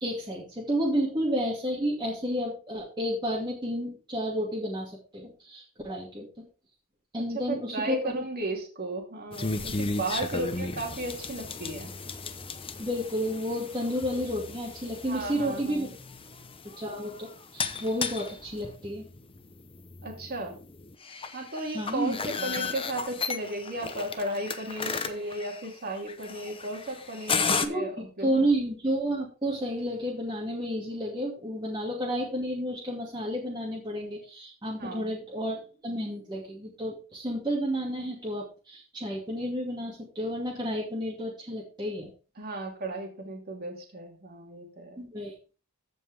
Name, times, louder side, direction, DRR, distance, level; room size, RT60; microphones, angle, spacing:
voice 1, 0.0-6.3 7.1-8.1 10.3-10.4 12.8-15.9 16.8-19.1 21.7-22.2 27.6-42.1 45.0-45.3, equal, 20° right, -5 dB, 2.4 m, -31 dB
voice 2, 7.1-11.9 15.1-15.9 20.0-20.6 21.3-28.3 34.8-35.1 42.4-45.0, right 2 dB, 45° right, 1 dB, 2.6 m, -35 dB
sound 1, 9.3-27.7, left 4 dB, 25° left, 0.9 m, -35 dB
14.5 x 5.3 x 3.5 m, 0.35 s
head